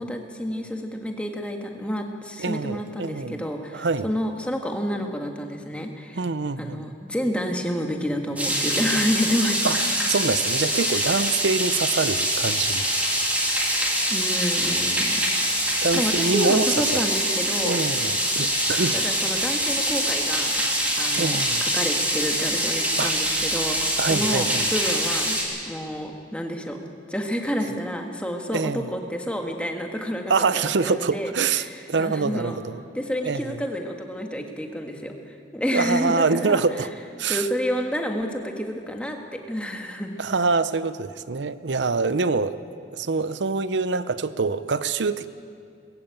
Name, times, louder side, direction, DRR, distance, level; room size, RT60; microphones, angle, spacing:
voice 1, 0.0-6.2 6.6-9.8 10.9-11.3 14.1-15.6 15.9-17.8 18.9-20.5 21.0-25.4 25.6-26.8 27.1-31.3 31.6-32.6 32.9-36.6 37.3-39.2 39.5-40.2, equal, 5° left, 3 dB, 1.6 m, -29 dB
voice 2, 2.4-3.5 3.7-4.1 6.2-6.9 9.6-9.8 10.1-12.9 15.8-17.0 17.6-19.0 21.1-21.6 23.0-23.1 24.0-24.7 28.5-28.9 30.3-32.8 33.2-33.6 35.7-36.9 37.2-37.5 40.2-45.3, right 4 dB, 85° right, 14 dB, 0.7 m, -25 dB
sound 1, 8.4-25.4, equal, 10° right, 3.2 m, -24 dB
20.5 x 15.5 x 9.0 m, 2.3 s
head